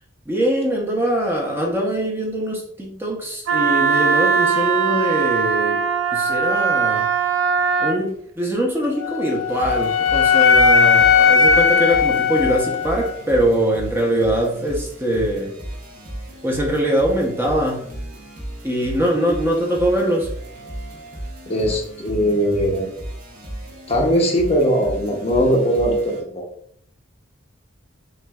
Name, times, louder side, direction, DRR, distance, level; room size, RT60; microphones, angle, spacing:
voice 1, 0.3-5.8 6.1-7.1 7.8-15.5 16.4-17.9 18.6-20.3, right 1 dB, 10° right, -1 dB, 0.7 m, -22 dB
Wind instrument woodwind instrument, 3.5-8.0, right 6 dB, 75° right, 0.4 m, -20 dB
Wind instrument woodwind instrument 2, 9.0-13.2, left 5 dB, 85° left, 0.4 m, -17 dB
sound 1, 9.5-26.2, right 1 dB, 45° right, 1.1 m, -35 dB
voice 2, 21.5-22.9 23.9-26.4, equal, 30° left, 1 dB, 0.7 m, -20 dB
6.1 x 2.5 x 2.3 m, 0.65 s
head